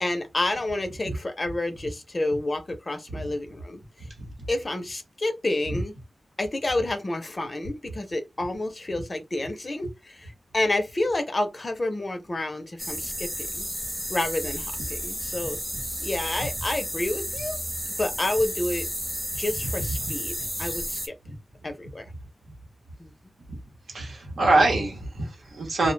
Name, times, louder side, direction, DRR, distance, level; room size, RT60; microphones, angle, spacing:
voice 1, 0.0-3.8 4.5-5.9 6.4-13.3 13.6-13.7 14.1-15.6 16.0-17.6 18.0-18.9 19.4-21.1 21.6-22.1 23.0-23.1, left 2 dB, 40° left, 0.5 m, -29 dB
sound 1, 12.8-21.1, equal, 10° right, 0.7 m, -32 dB
voice 2, 23.9-25.9, right 2 dB, 90° right, 0.9 m, -23 dB
2.2 x 2.1 x 3.1 m
cardioid pair, 55°, 0 cm